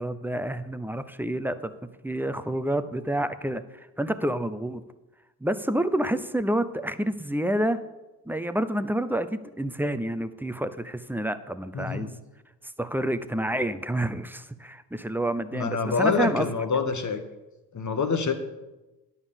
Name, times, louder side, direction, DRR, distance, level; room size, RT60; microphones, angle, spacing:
voice 1, 0.0-1.7 2.0-4.8 5.4-7.8 8.3-12.1 12.6-16.5, right 1 dB, 5° right, 11 dB, 0.7 m, -28 dB
voice 2, 11.7-12.1 15.5-17.2 17.7-18.3, left 5 dB, 35° left, 8 dB, 1.4 m, -26 dB
11.0 x 5.5 x 6.9 m, 1.0 s
hypercardioid pair, 40°, 48 cm